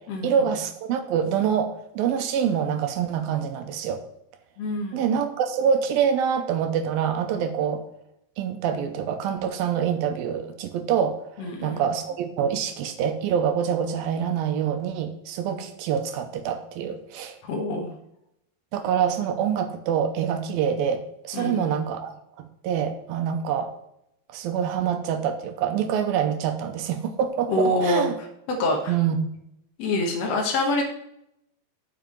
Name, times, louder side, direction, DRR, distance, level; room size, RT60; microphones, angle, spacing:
voice 1, 0.2-4.0 4.9-7.8 8.4-17.4 18.7-23.7 24.3-28.1 28.9-29.3, right 8 dB, 80° right, 7 dB, 2.3 m, -26 dB
voice 2, 4.6-5.0 11.4-11.8 17.4-17.9 21.3-21.7 27.5-28.1 28.5-28.9 29.8-30.8, left 2 dB, 70° left, 1 dB, 1.5 m, -25 dB
7.2 x 5.7 x 7.5 m, 0.78 s
omnidirectional pair, 4.8 m